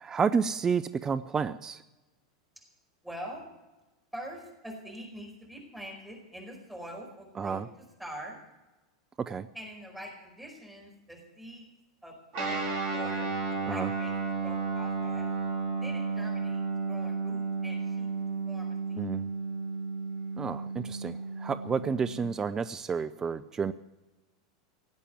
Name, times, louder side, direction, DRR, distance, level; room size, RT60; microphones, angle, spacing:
voice 1, 0.0-1.8 7.4-7.7 9.2-9.5 13.7-13.9 19.0-19.3 20.4-23.7, right 6 dB, 20° right, 12 dB, 0.5 m, -30 dB
voice 2, 3.0-3.4 4.1-7.6 8.0-8.4 9.5-11.7 12.0-14.1 14.4-15.3 15.8-18.1 18.5-19.1, equal, 5° right, 0 dB, 4.9 m, -44 dB
Guitar, 12.3-22.2, right 4 dB, 45° right, 4.7 m, -33 dB
18.0 x 8.4 x 9.3 m, 1.1 s
figure-of-eight pair, 85°, 3 cm